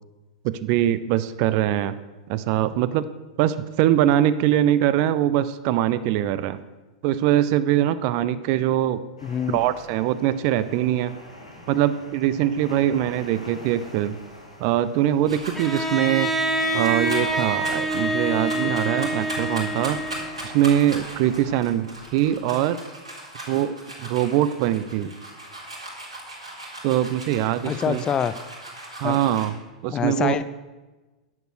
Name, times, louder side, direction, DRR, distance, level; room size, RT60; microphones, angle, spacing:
voice 1, 0.4-1.9 2.3-3.1 3.4-6.6 7.0-9.0 9.5-11.1 11.7-14.2 14.6-16.3 16.7-20.0 20.4-22.8 23.5-25.1 26.8-28.0 29.0-30.4, right 12 dB, 45° right, 14 dB, 0.5 m, -22 dB
sound 1, 9.2-21.6, left 1 dB, 90° left, 2.6 m, -44 dB
voice 2, 9.2-9.6 27.7-28.3 29.0-29.2 29.9-30.4, left 7 dB, 25° left, 14 dB, 0.5 m, -25 dB
sound 2, 15.3-15.9 16.5-29.5, right 1 dB, 75° right, 3.7 m, -38 dB
Bowed string instrument, 15.5-20.6, right 1 dB, 5° left, 1.8 m, -26 dB
10.5 x 8.0 x 6.4 m, 1.2 s
figure-of-eight pair, 90°, 3 cm